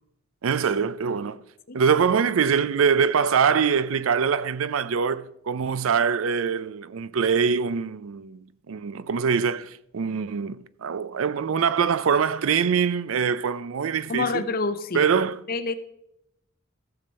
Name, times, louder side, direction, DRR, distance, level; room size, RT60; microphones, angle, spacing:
voice 1, 0.4-1.4 1.7-14.5 14.9-15.4, right 6 dB, 80° right, 0.4 m, -24 dB
voice 2, 14.1-15.0 15.5-15.7, left 3 dB, 45° left, 0.7 m, -27 dB
15.5 x 6.9 x 4.3 m
head